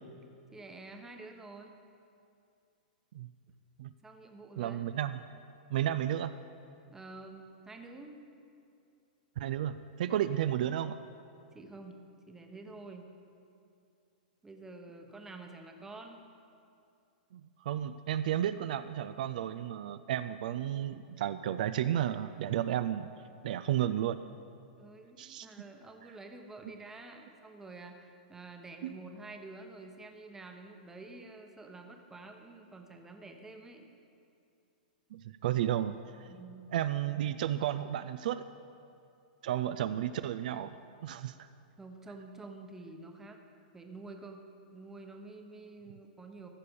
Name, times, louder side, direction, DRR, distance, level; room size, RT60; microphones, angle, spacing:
voice 1, 0.5-1.7 4.0-4.8 6.9-8.1 10.1-10.3 11.5-12.0 12.3-13.1 14.4-16.2 24.8-33.9 36.3-36.7 41.8-43.4 43.7-44.4 44.7-46.5, right 3 dB, 10° right, 4 dB, 0.9 m, -48 dB
voice 2, 4.6-5.2 5.7-6.4 9.4-11.0 17.3-23.1 23.4-24.2 25.2-25.5 28.8-28.9 35.1-36.3 36.7-38.4 39.4-40.8 41.0-41.5, right 11 dB, 65° right, 12 dB, 0.4 m, -32 dB
14.5 x 6.8 x 5.3 m, 2.5 s
hypercardioid pair, 140°, 5 cm